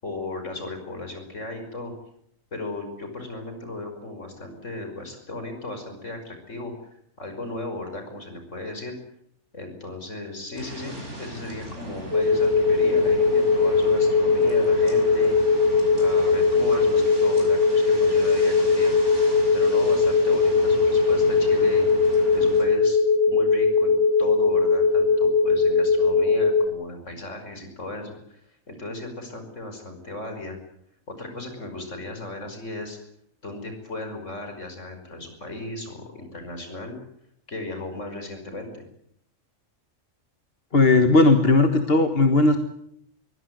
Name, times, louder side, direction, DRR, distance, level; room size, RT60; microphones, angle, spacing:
voice 1, 0.0-1.9 2.5-9.0 9.5-15.4 16.0-18.9 19.5-21.9 22.3-23.0 23.3-28.4 28.7-30.6 31.1-33.0 33.4-37.0 37.5-38.9, left 2 dB, 65° left, 6 dB, 5.9 m, -36 dB
sound 1, 10.5-22.6, right 1 dB, 60° right, 6.5 m, -38 dB
sound 2, 12.1-26.6, left 4 dB, 85° right, 2.4 m, -20 dB
voice 2, 40.7-42.6, left 2 dB, 50° left, 7 dB, 1.7 m, -17 dB
23.5 x 17.0 x 9.4 m, 0.72 s
omnidirectional pair, 1.4 m